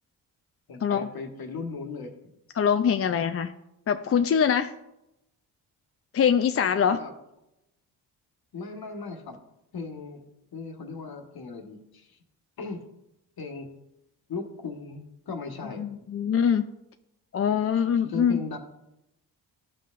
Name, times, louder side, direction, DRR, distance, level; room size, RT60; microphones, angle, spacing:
voice 1, 0.7-2.3 6.6-7.1 8.5-9.4 9.7-10.2 10.5-12.2 12.6-12.8 13.4-13.7 14.3-15.9 17.7-18.6, left 4 dB, 55° left, 4 dB, 1.4 m, -37 dB
voice 2, 2.6-3.5 3.9-4.7 6.1-7.0 15.8-16.7 17.3-18.4, left 7 dB, 35° left, 8 dB, 0.5 m, -23 dB
12.0 x 5.5 x 2.5 m, 0.88 s
supercardioid pair, 50°, 43 cm